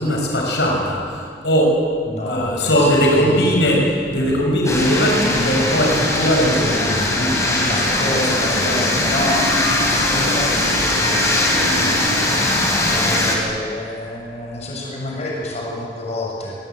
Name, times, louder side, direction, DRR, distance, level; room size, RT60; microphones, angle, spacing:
voice 1, 0.0-1.8 2.3-8.8, equal, 80° left, -1 dB, 6.2 m, -19 dB
voice 2, 2.1-3.6 7.7-16.5, left 1 dB, 40° left, -2 dB, 6.6 m, -29 dB
sound 1, 2.7-13.0, equal, 35° right, 7.1 m, -38 dB
sound 2, 4.6-13.4, left 1 dB, 20° left, 5.0 m, -20 dB
26.0 x 19.5 x 9.3 m, 2.1 s
head